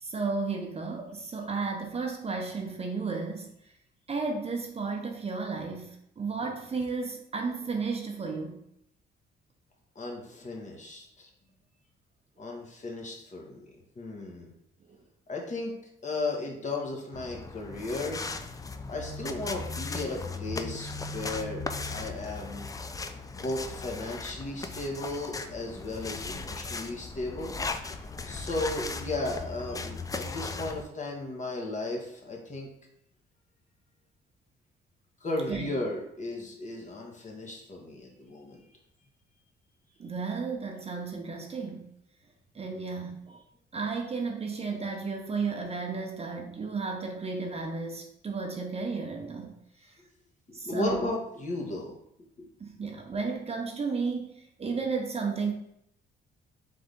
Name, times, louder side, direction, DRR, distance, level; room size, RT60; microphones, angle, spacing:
voice 1, 0.0-3.5 4.1-5.9 6.2-8.6 35.5-35.9 40.0-41.9 42.5-43.4 43.7-49.5 50.5-51.1 52.6-54.3 54.6-55.5, right 4 dB, 30° right, 1 dB, 0.7 m, -33 dB
voice 2, 9.9-11.3 12.4-13.7 14.0-14.5 15.3-15.7 16.0-18.2 18.9-21.6 21.9-22.7 23.4-27.7 28.2-32.7 35.2-38.6 50.5-51.9 52.4-52.5, left 2 dB, 40° left, 0 dB, 1.2 m, -35 dB
sound 1, 17.1-30.8, left 3 dB, 20° left, 0.3 m, -37 dB
3.6 x 3.4 x 3.8 m, 0.76 s
cardioid pair, 90°, 20 cm